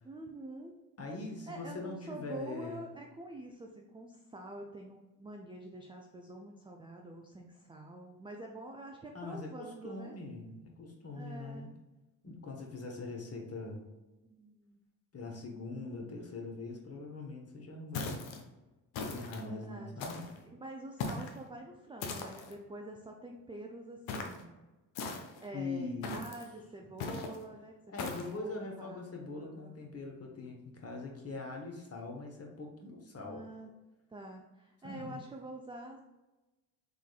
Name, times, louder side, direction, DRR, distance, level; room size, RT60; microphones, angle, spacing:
voice 1, 0.0-0.7 1.5-10.2 11.1-11.7 14.2-14.8 19.4-19.9 20.4-24.6 25.4-27.7 28.0-29.0 29.4-29.8 33.2-33.7 34.1-36.0, right 2 dB, 10° right, 1 dB, 0.3 m, -47 dB
voice 2, 1.0-2.9 9.1-11.7 12.2-13.9 15.1-18.3 19.0-20.3 25.5-26.2 26.8-26.9 27.9-33.4 34.8-35.2, left 3 dB, 30° left, 1 dB, 1.1 m, -42 dB
sound 1, 17.9-18.4 18.9-19.4 20.0-20.4 21.0-21.4 22.0-22.5 24.1-24.4 24.9-25.5 26.0-26.4 27.0-27.4 28.0-28.3, left 4 dB, 65° left, 0.8 m, -39 dB
3.6 x 3.3 x 2.3 m, 1.1 s
hypercardioid pair, 55°, 47 cm